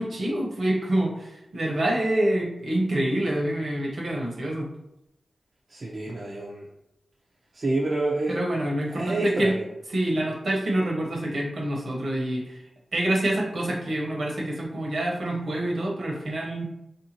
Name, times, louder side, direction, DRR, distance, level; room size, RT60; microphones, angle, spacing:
voice 1, 0.0-4.7 8.3-9.5 9.9-12.6 12.9-16.6, right 1 dB, 75° right, -3 dB, 1.0 m, -26 dB
voice 2, 5.7-6.6 7.5-8.4 8.9-9.5, right 2 dB, 60° right, -4 dB, 0.6 m, -28 dB
3.4 x 2.7 x 2.9 m, 0.85 s
cardioid pair, 50°, 0 cm